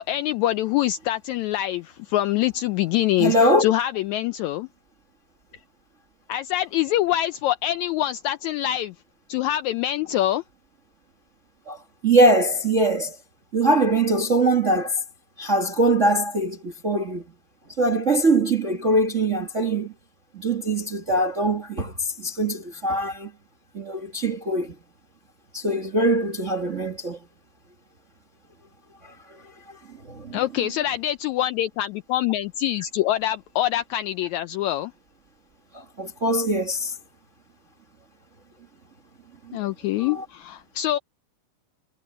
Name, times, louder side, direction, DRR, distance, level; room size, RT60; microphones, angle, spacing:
voice 1, 0.0-4.7 6.3-8.9 9.3-10.4 30.3-34.9 39.5-41.0, left 13 dB, 80° left, 1.7 m, -25 dB
voice 2, 3.2-3.7 11.7-13.2 13.5-15.0 15.4-17.2 17.8-19.9 20.3-23.3 23.7-24.7 25.5-27.2 29.0-29.8 30.0-30.7 35.7-36.9 39.5-39.6 39.9-40.2, right 1 dB, 40° right, 1.1 m, -22 dB
omnidirectional pair, 3.8 m